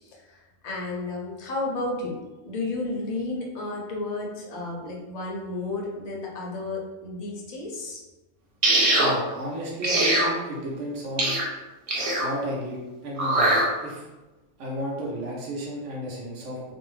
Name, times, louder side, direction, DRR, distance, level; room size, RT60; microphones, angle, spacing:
voice 1, 0.0-2.2 2.4-8.0, left 2 dB, 55° left, -2 dB, 0.4 m, -32 dB
sound 1, 8.6-9.1 9.8-10.3 11.2-11.4 11.9-12.3 13.2-13.6, right 1 dB, 55° right, 0.4 m, -21 dB
voice 2, 9.0-11.4 12.2-14.1 14.6-16.7, equal, 75° right, -4 dB, 1.0 m, -33 dB
2.6 x 2.0 x 3.1 m, 1.1 s
omnidirectional pair, 1.3 m